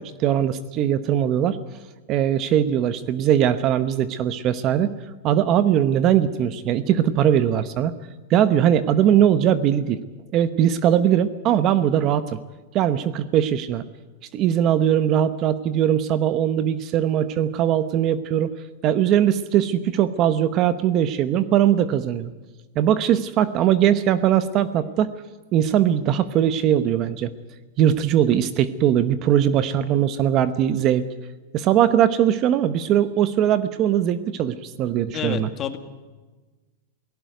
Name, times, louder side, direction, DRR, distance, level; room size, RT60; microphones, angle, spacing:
voice 1, 0.0-1.6 2.1-4.9 5.2-8.0 8.3-10.0 10.3-12.4 12.7-13.8 14.3-18.5 18.8-22.3 22.8-25.1 25.5-27.3 27.8-31.1 31.5-35.5, right 10 dB, 30° right, 14 dB, 0.9 m, -20 dB
voice 2, 35.1-35.8, left 9 dB, 25° left, 9 dB, 1.9 m, -29 dB
18.5 x 16.5 x 9.3 m, 1.3 s
supercardioid pair, 155°, 0 cm